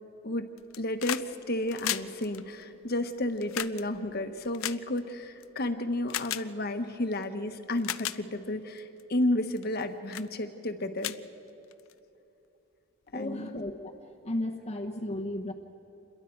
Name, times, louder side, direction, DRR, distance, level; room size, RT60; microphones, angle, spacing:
sound 1, 0.6-1.3 1.6-5.4 6.1-6.4 7.2-7.3 7.7-8.2 8.8-9.0 9.6-9.8 10.1-10.3 10.7-10.8 11.0-11.9 13.1-13.2, left 12 dB, 75° left, 0.5 m, -35 dB
voice 1, 0.8-11.2 13.1-13.5, left 1 dB, 50° left, 8 dB, 1.2 m, -32 dB
voice 2, 13.1-13.9 14.2-15.5, left 1 dB, 30° left, 2 dB, 1.0 m, -34 dB
28.0 x 22.0 x 4.6 m, 3.0 s
head